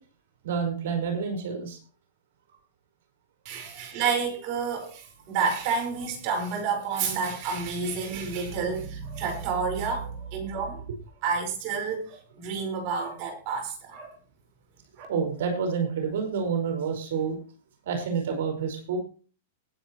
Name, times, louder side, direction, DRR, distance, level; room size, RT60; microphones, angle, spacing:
voice 1, 0.4-1.8 3.6-4.0 15.1-17.4 17.8-19.0, right 6 dB, 70° right, 5.1 m, -29 dB
voice 2, 3.4-10.8 11.2-14.1 15.0-15.1, right 5 dB, 45° right, 5.1 m, -30 dB
20.0 x 8.1 x 3.1 m
supercardioid pair, 145°, 0 cm